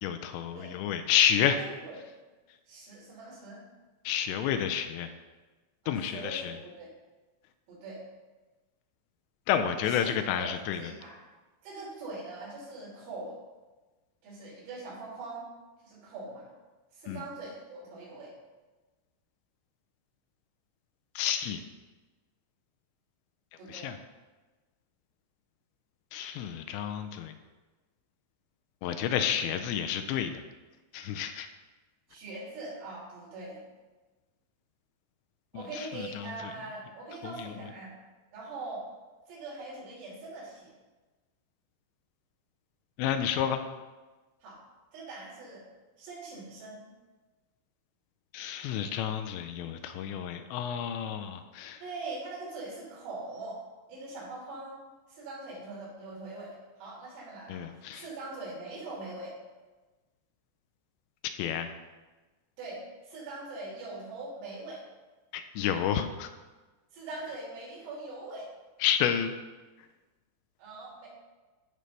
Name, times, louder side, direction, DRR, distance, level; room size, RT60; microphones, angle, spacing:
voice 1, 0.0-1.6 4.0-5.1 5.9-6.5 9.5-10.9 17.1-17.2 21.2-21.6 23.7-24.0 26.1-27.3 28.8-30.3 30.9-31.5 35.5-36.5 37.2-37.5 43.0-43.6 48.3-51.8 57.5-58.1 61.4-61.7 65.3-66.3 68.8-69.3, left 9 dB, 85° left, 7 dB, 2.6 m, -30 dB
voice 2, 1.6-2.0 2.7-3.6 5.8-6.9 7.7-8.0 9.9-10.1 10.4-10.5 10.8-11.2 11.6-13.4 14.2-15.5 15.8-16.5 16.9-18.3 23.6-23.9 32.1-33.7 35.5-37.9 38.3-38.9 39.3-40.7 44.4-44.6 44.9-45.7 46.0-46.9 51.8-53.6 53.9-54.8 55.1-56.5 56.8-59.4 62.6-64.8 66.9-68.5 70.6-71.1, right 2 dB, 85° right, -6 dB, 5.9 m, -42 dB
14.5 x 5.5 x 3.3 m, 1.2 s
omnidirectional pair, 5.4 m